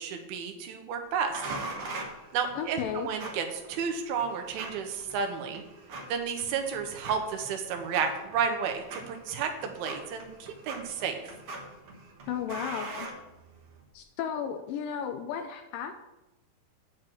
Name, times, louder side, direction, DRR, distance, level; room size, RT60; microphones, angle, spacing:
voice 1, 0.0-1.4 2.3-5.6 6.1-11.3, right 6 dB, 80° right, 5 dB, 2.8 m, -32 dB
sound 1, 1.3-13.8, right 3 dB, 55° right, 1.6 m, -43 dB
voice 2, 2.6-3.1 12.3-13.1 13.9-16.0, left 8 dB, 80° left, 7 dB, 2.0 m, -34 dB
9.2 x 4.6 x 7.6 m, 0.98 s
omnidirectional pair, 4.3 m